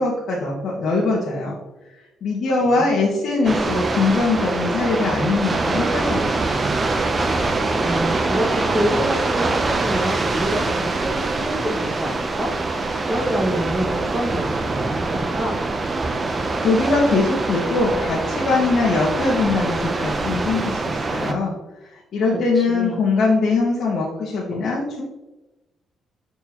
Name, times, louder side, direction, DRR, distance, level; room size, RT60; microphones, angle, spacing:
voice 1, 0.0-1.5 2.2-6.7 16.6-21.5 21.9-25.0, left 3 dB, 60° left, -5 dB, 1.4 m, -22 dB
sound 1, 3.4-21.3, right 3 dB, 30° right, 0.6 m, -24 dB
voice 2, 7.8-15.6 22.3-23.0, equal, 10° right, -1 dB, 1.7 m, -27 dB
8.9 x 4.4 x 3.0 m, 1.0 s
cardioid pair, 90°, 0 cm